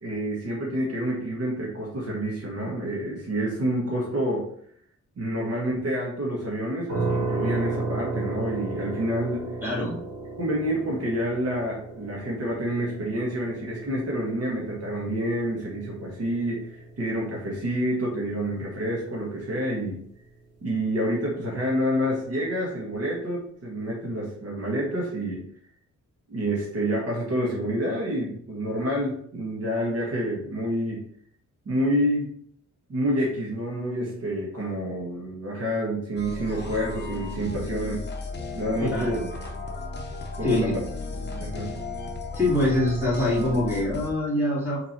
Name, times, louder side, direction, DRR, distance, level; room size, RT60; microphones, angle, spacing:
voice 1, 0.0-4.4 5.2-9.5 10.4-20.0 20.6-25.4 26.3-31.0 31.6-32.3 32.9-38.1 38.5-39.2 40.4-40.7 41.2-41.7, equal, 55° right, -3 dB, 1.7 m, -28 dB
sound 1, 6.9-19.7, right 3 dB, 35° right, 2.0 m, -35 dB
voice 2, 9.6-10.0 38.8-39.3 40.4-40.8 42.3-44.8, left 1 dB, 5° right, -6 dB, 2.7 m, -24 dB
sound 2, 36.2-44.1, left 3 dB, 35° left, 0.9 m, -35 dB
5.8 x 3.8 x 4.4 m, 0.63 s
wide cardioid pair, 170°, 30 cm